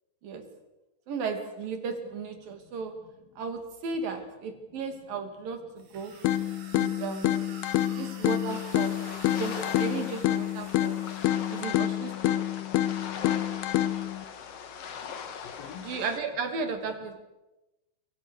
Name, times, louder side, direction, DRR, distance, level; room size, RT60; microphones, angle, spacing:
voice 1, 1.1-2.9 3.4-6.1 6.7-7.3 7.9-9.0 9.2-11.0 11.5-12.4 15.8-17.2, right 5 dB, 65° right, 6 dB, 4.4 m, -35 dB
voice 2, 2.5-3.3 4.1-4.2 4.7-4.8 5.8-6.4 12.6-13.0 15.3-16.0, left 9 dB, 70° left, 6 dB, 3.4 m, -51 dB
sound 1, 5.8-11.7, right 4 dB, 85° right, 5.9 m, -49 dB
sound 2, 6.2-14.2, left 13 dB, 85° left, 3.1 m, -28 dB
sound 3, 8.5-16.2, left 7 dB, 50° left, 2.2 m, -41 dB
27.0 x 25.0 x 6.7 m, 1.0 s
omnidirectional pair, 4.5 m